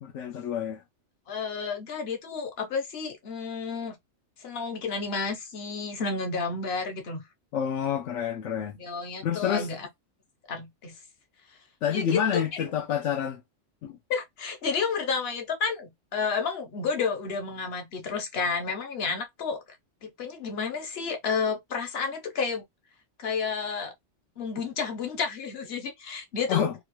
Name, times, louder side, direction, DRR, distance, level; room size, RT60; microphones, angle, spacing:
voice 1, 0.0-0.8 7.5-8.8 9.2-9.7 11.8-13.4 13.8-13.9 26.5-26.7, left 8 dB, 80° left, 0.9 m, -28 dB
voice 2, 1.3-3.9 4.4-7.2 8.7-9.9 10.5-10.9 11.9-12.6 14.1-19.6 20.0-22.6 23.2-23.9 24.4-26.7, left 5 dB, 60° left, 1.1 m, -31 dB
2.9 x 2.5 x 3.0 m
omnidirectional pair, 1.2 m